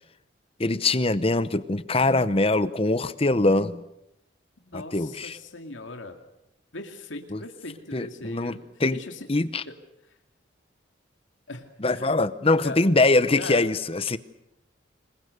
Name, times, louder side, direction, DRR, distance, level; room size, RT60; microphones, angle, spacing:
voice 1, 0.6-3.8 4.7-5.4 7.3-7.4 7.9-8.6 8.8-9.0 9.3-9.6 11.8-14.2, left 2 dB, 30° left, 15 dB, 0.9 m, -23 dB
voice 2, 4.6-6.2 6.7-8.6 8.9-9.3 9.7-9.8 10.1-10.2 11.5-12.2 12.6-12.8 13.3-13.7, left 2 dB, 85° left, 4 dB, 2.5 m, -39 dB
27.0 x 22.5 x 6.8 m, 0.82 s
head